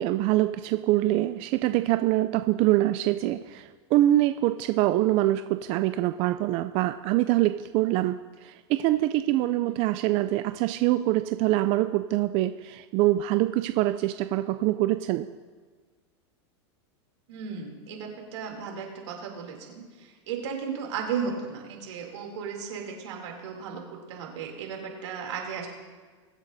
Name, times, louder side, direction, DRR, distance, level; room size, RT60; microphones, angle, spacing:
voice 1, 0.0-15.3, right 15 dB, 40° right, 10 dB, 0.4 m, -24 dB
voice 2, 17.3-25.7, right 6 dB, 80° right, 0 dB, 2.9 m, -35 dB
22.0 x 8.2 x 2.7 m, 1.5 s
supercardioid pair, 130°, 15 cm